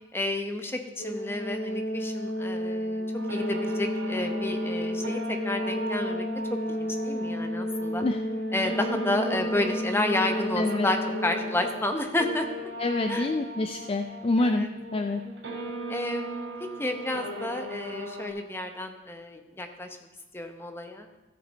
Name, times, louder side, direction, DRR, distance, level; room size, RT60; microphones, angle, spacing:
voice 1, 0.1-3.0 3.3-8.0 8.5-12.5 13.1-13.3 14.4-14.7 15.9-16.5 16.8-20.0 20.3-21.1, left 2 dB, 10° left, 5 dB, 0.8 m, -31 dB
Organ, 1.0-11.9, equal, 85° left, 3.5 m, -31 dB
sound 1, 3.1-18.3, right 1 dB, 85° right, 3.5 m, -38 dB
voice 2, 10.6-10.9 12.8-15.3, left 2 dB, 30° left, 7 dB, 0.4 m, -27 dB
14.5 x 6.6 x 4.1 m, 1.1 s
head